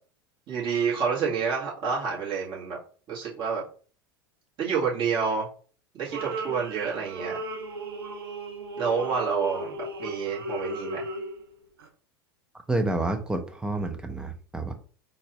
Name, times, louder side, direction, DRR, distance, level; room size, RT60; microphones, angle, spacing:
voice 1, 0.5-2.8 3.1-3.6 4.6-5.5 5.9-7.4 8.8-11.1, right 6 dB, 45° right, -5 dB, 2.0 m, -28 dB
sound 1, 6.1-11.5 11.8-11.9, right 2 dB, 80° right, 0.6 m, -36 dB
voice 2, 12.7-14.7, right 2 dB, 5° right, 6 dB, 0.7 m, -29 dB
4.0 x 2.6 x 3.1 m, 0.40 s
hypercardioid pair, 85°, 12 cm